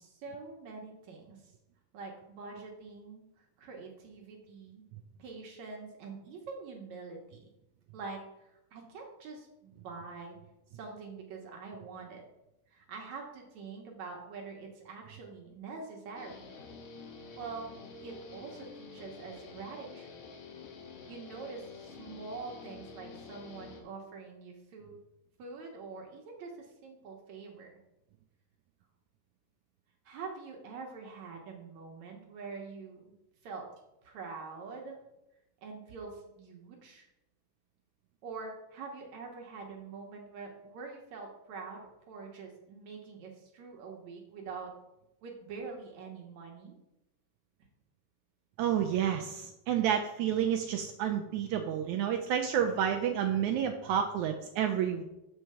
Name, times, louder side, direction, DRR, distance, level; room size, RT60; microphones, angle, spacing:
voice 1, 0.0-1.4 1.9-4.8 5.2-7.5 7.9-10.4 10.7-12.2 12.7-16.4 17.4-17.7 18.0-20.2 21.1-25.0 25.4-27.7 30.1-33.1 33.4-33.7 34.0-35.0 35.6-37.1 38.2-44.7 45.2-46.8, right 4 dB, 65° right, 0 dB, 2.1 m, -45 dB
Guitar, 16.2-23.8, left 4 dB, 65° left, 2.2 m, -48 dB
voice 2, 48.6-55.0, right 9 dB, 85° right, 4 dB, 1.7 m, -30 dB
7.4 x 4.5 x 6.8 m, 0.91 s
omnidirectional pair, 4.0 m